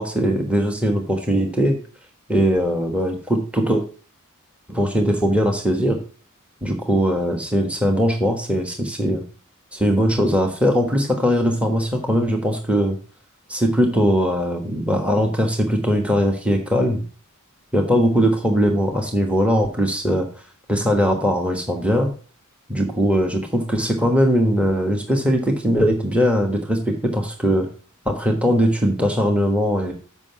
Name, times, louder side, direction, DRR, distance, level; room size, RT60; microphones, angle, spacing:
voice 1, 0.0-1.8 2.3-3.8 4.7-6.0 6.6-9.2 9.7-13.0 13.5-17.0 17.7-20.3 20.7-22.1 22.7-27.7 28.0-29.9, equal, 5° right, 3 dB, 1.3 m, -20 dB
7.6 x 5.6 x 5.8 m, 0.38 s
head